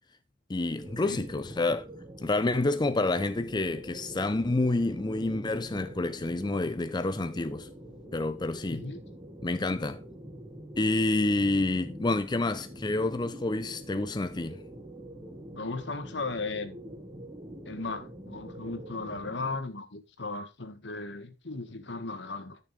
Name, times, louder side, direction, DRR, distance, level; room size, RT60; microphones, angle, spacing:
voice 1, 0.5-1.8 2.2-7.7 8.1-8.8 9.4-10.0 10.8-14.6, left 2 dB, 25° left, 0.5 m, -28 dB
sound 1, 0.8-19.6, right 1 dB, 20° right, 1.5 m, -45 dB
voice 2, 8.7-9.0 15.5-16.8 17.6-22.6, left 3 dB, 70° left, 1.6 m, -36 dB
12.5 x 6.6 x 3.3 m
head